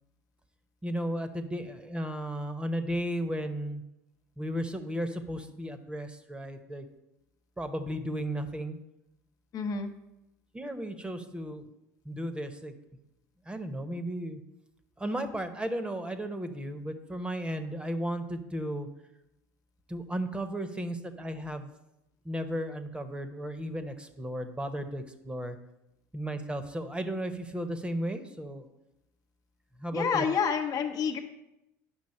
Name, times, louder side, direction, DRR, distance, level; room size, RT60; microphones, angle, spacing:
voice 1, 0.8-3.8 4.4-6.8 7.6-8.8 10.5-11.6 12.0-12.7 13.5-14.4 15.0-18.9 19.9-21.7 22.2-25.6 26.1-28.6 29.8-30.3, equal, 10° right, 8 dB, 1.0 m, -34 dB
voice 2, 9.5-9.9 29.9-31.2, left 6 dB, 45° left, 4 dB, 0.9 m, -28 dB
9.9 x 6.0 x 4.3 m, 0.91 s
hypercardioid pair, 70°, 9 cm